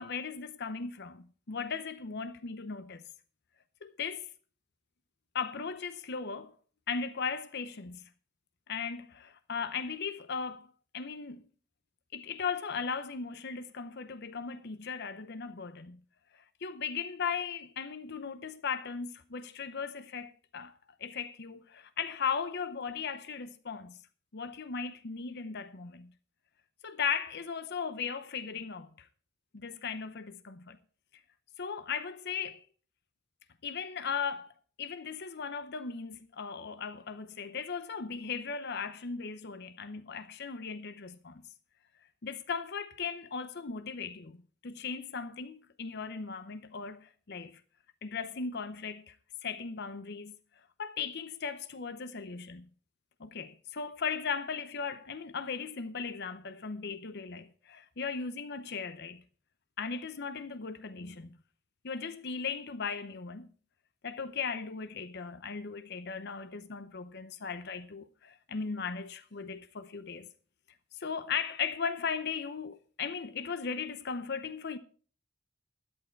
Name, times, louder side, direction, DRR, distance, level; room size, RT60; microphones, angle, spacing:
voice 1, 0.0-3.0 3.8-4.3 5.3-6.5 6.9-8.1 8.7-11.4 12.1-16.0 16.3-20.7 21.0-24.0 24.3-26.1 26.8-29.1 29.5-30.8 31.6-32.6 33.6-34.5 34.8-41.4 42.2-47.6 48.0-49.2 49.4-50.3 50.8-52.7 53.2-59.2 59.8-61.4 61.8-63.5 64.0-70.3 70.9-74.8, left 6 dB, 50° left, 0.7 m, -37 dB
13.0 x 10.5 x 4.5 m
head